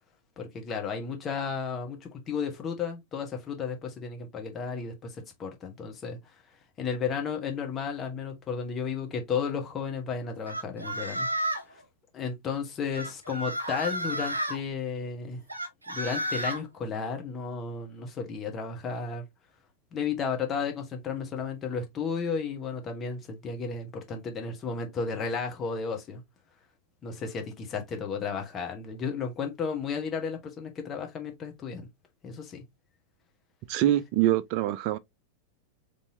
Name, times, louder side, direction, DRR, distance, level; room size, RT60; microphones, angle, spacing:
voice 1, 0.4-6.2 6.8-11.3 11.7-11.8 12.1-15.4 15.9-19.2 19.9-26.2 27.0-31.9 32.2-32.6, left 5 dB, 25° left, 1.3 m, -33 dB
sound 1, 10.5-11.7 12.9-14.6 15.5-16.6, right 1 dB, 80° right, 0.8 m, -32 dB
voice 2, 33.7-35.0, right 13 dB, 45° right, 0.4 m, -24 dB
4.2 x 3.4 x 2.7 m
figure-of-eight pair, 90°, 0 cm